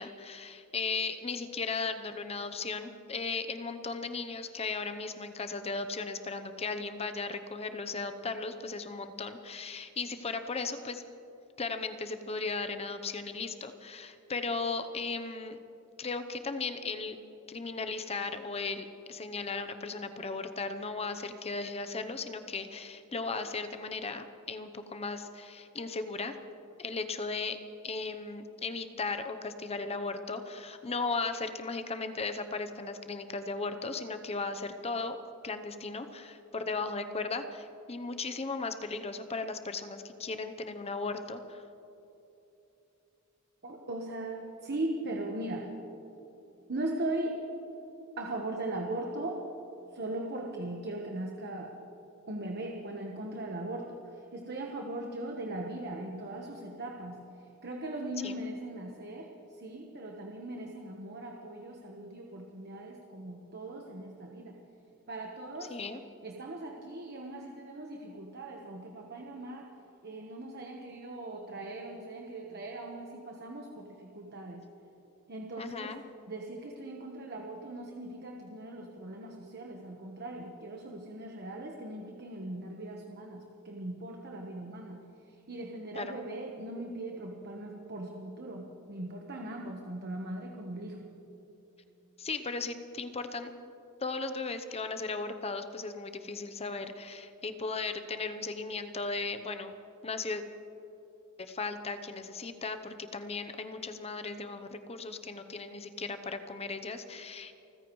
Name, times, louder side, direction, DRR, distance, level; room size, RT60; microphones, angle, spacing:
voice 1, 0.0-11.0 11.6-15.6 16.0-17.2 17.5-26.4 26.8-35.2 35.4-41.6 58.2-58.4 65.7-66.0 75.6-76.0 85.9-86.2 92.2-93.5 94.0-99.8 100.0-100.4 101.4-107.5, left 4 dB, 30° left, 8 dB, 0.8 m, -36 dB
voice 2, 43.6-45.7 46.7-47.4 48.2-49.5 49.9-51.8 52.3-54.0 54.3-57.3 57.6-64.6 65.1-65.8 66.2-69.7 70.0-74.6 75.3-76.0 76.3-85.0 85.5-91.2, right 1 dB, 50° right, 1 dB, 1.2 m, -39 dB
29.0 x 15.0 x 3.2 m, 3.0 s
head